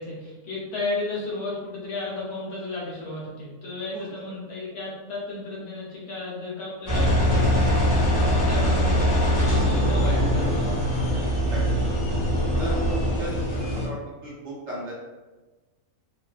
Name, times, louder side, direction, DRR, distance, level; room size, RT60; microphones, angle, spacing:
voice 1, 0.0-11.2, left 2 dB, 85° left, -5 dB, 1.4 m, -34 dB
Engine, 6.9-13.9, equal, 30° left, 1.2 m, -22 dB
voice 2, 12.6-14.9, equal, 55° right, -5 dB, 1.0 m, -36 dB
3.3 x 2.3 x 2.4 m, 1.2 s
omnidirectional pair, 1.5 m